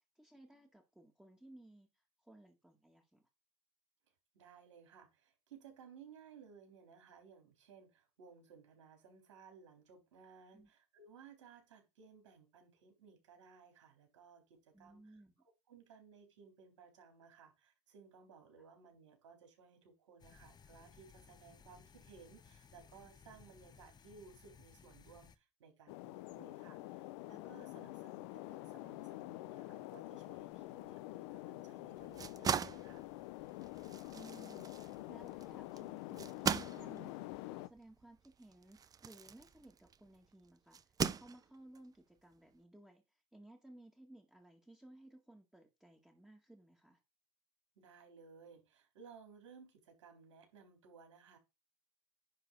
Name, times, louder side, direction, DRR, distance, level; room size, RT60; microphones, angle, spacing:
voice 1, 0.0-1.9 2.2-3.3 10.5-10.7 14.7-15.3 26.3-26.5 26.8-26.9 34.1-34.7 35.1-47.0, right 1 dB, 5° right, 2.0 m, -59 dB
voice 2, 4.3-15.2 15.7-33.0 47.8-51.4, right 6 dB, 85° right, 4.0 m, -60 dB
sound 1, 20.2-25.4, left 6 dB, 25° left, 1.2 m, -61 dB
sound 2, 25.9-37.7, left 18 dB, 70° left, 0.8 m, -47 dB
sound 3, 32.0-40.1 40.7-41.8, right 7 dB, 25° right, 0.6 m, -40 dB
10.5 x 3.9 x 5.4 m
hypercardioid pair, 95°, 15 cm